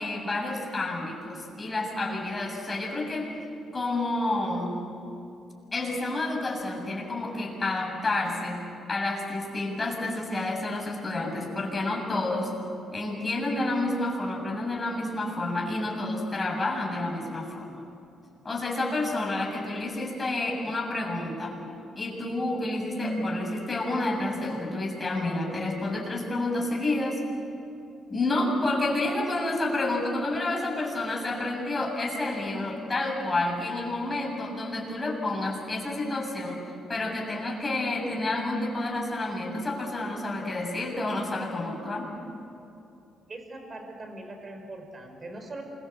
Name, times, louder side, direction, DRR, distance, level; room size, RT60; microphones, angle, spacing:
voice 1, 0.0-3.3 3.7-4.8 5.7-8.6 8.9-12.5 12.9-17.8 18.4-21.6 22.0-27.2 28.1-42.1, left 2 dB, 25° left, -1 dB, 7.4 m, -29 dB
voice 2, 43.3-45.6, right 2 dB, 35° right, 5 dB, 4.8 m, -41 dB
27.5 x 23.5 x 8.1 m, 2.8 s
cardioid pair, 90°, 0 cm